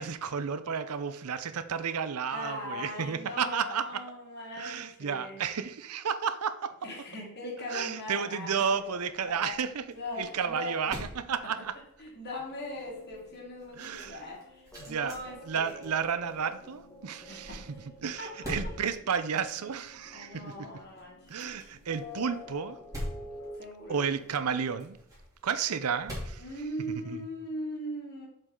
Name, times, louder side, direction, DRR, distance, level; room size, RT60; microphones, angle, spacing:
voice 1, 0.0-4.0 4.6-6.7 7.7-9.8 10.2-11.7 13.8-14.2 14.8-15.2 15.5-17.6 18.0-20.4 21.3-22.8 23.9-25.0 25.4-26.4 27.0-27.2, right 6 dB, 85° right, 0.6 m, -32 dB
voice 2, 2.3-5.4 6.8-9.6 9.9-10.9 12.0-15.9 17.0-17.6 18.2-18.7 20.1-21.2 23.6-24.2 26.4-28.3, left 1 dB, 50° left, 2.4 m, -40 dB
sound 1, 8.6-27.3, equal, 15° right, 2.8 m, -46 dB
sound 2, 12.5-23.6, left 2 dB, 15° left, 1.1 m, -49 dB
7.5 x 5.2 x 3.7 m
head